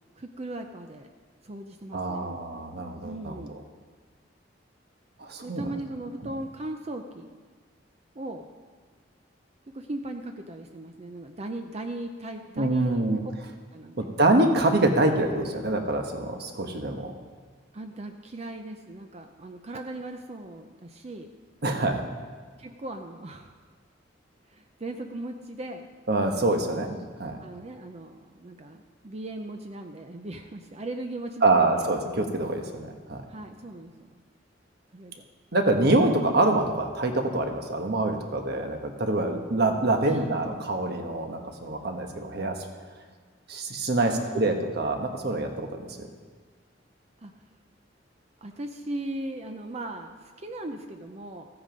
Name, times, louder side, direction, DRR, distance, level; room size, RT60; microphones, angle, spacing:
voice 1, 0.2-1.1 1.4-2.5 3.0-3.6 5.4-7.3 8.1-8.5 9.7-13.3 13.7-14.1 17.7-21.3 22.6-23.5 24.5-25.9 27.4-31.6 33.3-34.2 34.9-35.2 40.1-40.7 44.0-44.8 47.2-47.3 48.4-51.5, right 1 dB, 35° right, 5 dB, 0.6 m, -38 dB
voice 2, 1.9-3.4 5.2-5.7 12.6-13.2 14.0-17.1 21.6-22.0 26.1-27.4 31.4-33.2 35.5-42.6 43.5-46.1, right 2 dB, 60° right, 4 dB, 1.3 m, -25 dB
14.5 x 8.7 x 5.2 m, 1.5 s
head